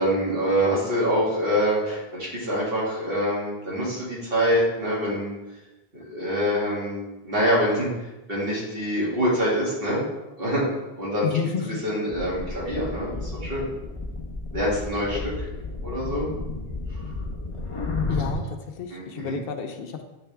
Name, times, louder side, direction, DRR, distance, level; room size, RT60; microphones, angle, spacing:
voice 1, 0.0-5.3 5.9-7.9 8.3-10.0 10.4-10.6 11.0-11.3 11.8-13.6 14.5-15.3 15.8-16.3 17.0-17.1 18.9-19.4, equal, 65° right, -7 dB, 2.2 m, -25 dB
voice 2, 11.2-11.8 15.1-15.2 18.1-20.0, left 7 dB, 70° left, 6 dB, 0.8 m, -30 dB
sound 1, 12.1-18.4, left 3 dB, 35° left, 0.8 m, -32 dB
8.5 x 3.4 x 3.3 m, 1.0 s
omnidirectional pair, 1.0 m